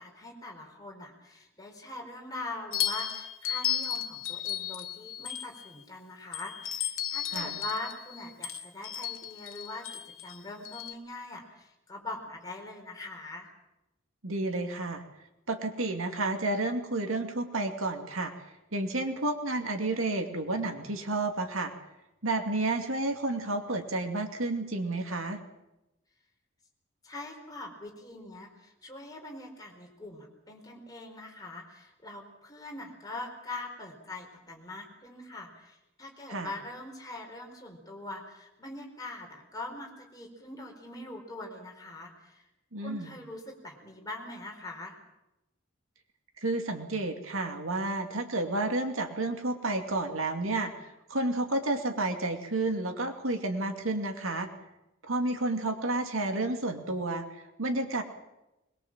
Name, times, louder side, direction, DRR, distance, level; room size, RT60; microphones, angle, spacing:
voice 1, 0.0-9.9 10.2-13.5 27.0-42.4 42.8-45.0, left 2 dB, 20° left, 1 dB, 4.4 m, -42 dB
sound 1, 2.7-5.8 6.3-10.9, left 10 dB, 90° left, 1.7 m, -34 dB
voice 2, 14.2-15.0 15.5-18.3 18.7-21.7 22.2-25.4 36.3-36.5 42.7-43.1 46.4-54.5 55.0-58.0, right 2 dB, 90° right, 5 dB, 2.5 m, -31 dB
22.0 x 21.5 x 7.5 m, 0.94 s
head